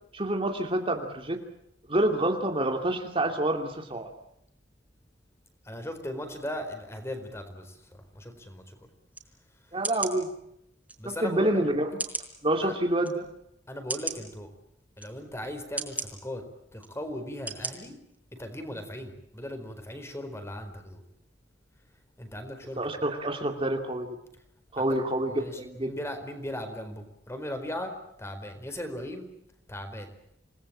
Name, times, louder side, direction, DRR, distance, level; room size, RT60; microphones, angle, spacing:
voice 1, 0.1-1.4 1.9-4.1 9.7-10.3 11.0-11.9 12.4-13.3 22.8-24.2 24.7-25.9, right 1 dB, 30° right, 4 dB, 2.5 m, -27 dB
voice 2, 5.6-8.7 11.0-11.7 12.6-12.7 13.7-14.5 15.0-16.4 16.7-17.9 18.3-21.0 22.2-22.8 24.8-25.0 25.3-27.9 28.2-29.3 29.7-30.1, left 1 dB, 15° left, 7 dB, 4.5 m, -38 dB
sound 1, 9.1-9.3 9.8-10.2 10.9-11.0 12.0-12.3 13.0-13.1 13.9-14.2 15.0-15.1 15.8-16.1 16.8-16.9 17.5-17.7 18.1-18.2, right 3 dB, 10° right, 4.7 m, -33 dB
28.5 x 19.5 x 8.8 m, 0.77 s
head